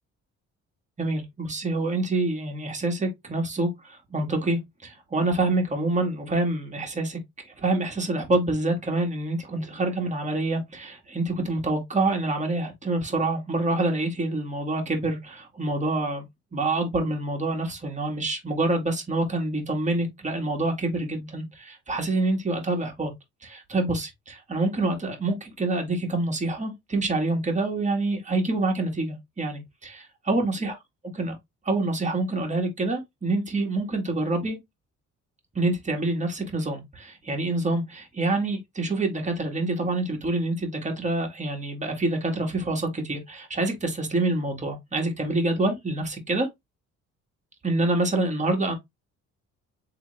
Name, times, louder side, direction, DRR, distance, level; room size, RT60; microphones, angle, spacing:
voice 1, 1.0-7.2 7.4-16.2 16.5-23.1 23.4-30.7 31.1-31.4 31.6-34.6 35.5-46.5 47.6-48.7, right 2 dB, 25° right, 1.5 m, -26 dB
3.3 x 3.0 x 3.1 m
cardioid pair, 90°, 30 cm